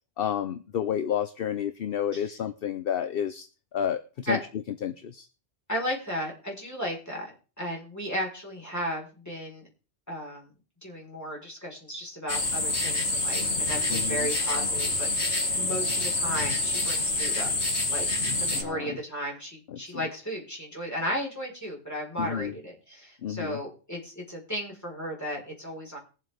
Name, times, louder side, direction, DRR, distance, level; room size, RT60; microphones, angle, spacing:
voice 1, 0.2-3.5 3.7-4.4 4.8-5.3 13.9-14.3 18.5-19.0 19.7-19.9 22.2-22.5 23.2-23.6, left 9 dB, 60° left, 11 dB, 0.9 m, -30 dB
voice 2, 5.7-9.7 10.1-10.5 10.8-15.1 15.6-17.5 17.9-18.1 18.4-26.0, equal, 15° left, -2 dB, 4.5 m, -35 dB
sound 1, 12.3-18.6, left 2 dB, 90° left, 2.3 m, -27 dB
22.0 x 7.5 x 3.5 m, 0.35 s
omnidirectional pair, 1.1 m